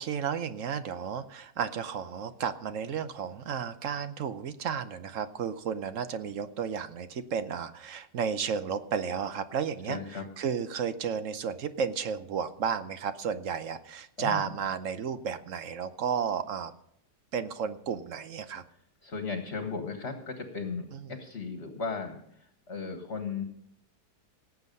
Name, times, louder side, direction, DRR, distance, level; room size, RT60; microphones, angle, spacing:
voice 1, 0.0-16.7 17.3-18.6 20.9-21.1, right 7 dB, 60° right, 11 dB, 1.0 m, -33 dB
voice 2, 9.9-10.3 14.2-14.5 19.0-22.2 22.7-23.4, left 4 dB, 45° left, 5 dB, 1.6 m, -36 dB
18.0 x 8.1 x 5.4 m, 0.72 s
omnidirectional pair, 1.7 m